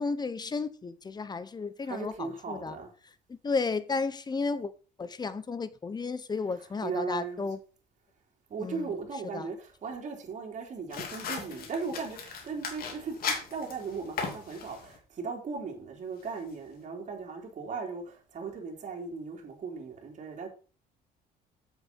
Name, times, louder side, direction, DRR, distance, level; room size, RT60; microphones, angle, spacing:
voice 1, 0.0-2.8 3.3-4.7 5.0-7.6 8.6-9.0 9.2-9.5, left 4 dB, 25° left, 1.0 m, -33 dB
voice 2, 1.9-2.9 6.8-7.4 8.5-20.5, right 4 dB, 45° right, 3.6 m, -37 dB
sound 1, 10.9-15.0, left 5 dB, 60° left, 2.9 m, -37 dB
7.9 x 7.4 x 5.4 m
cardioid pair, 110°, 17 cm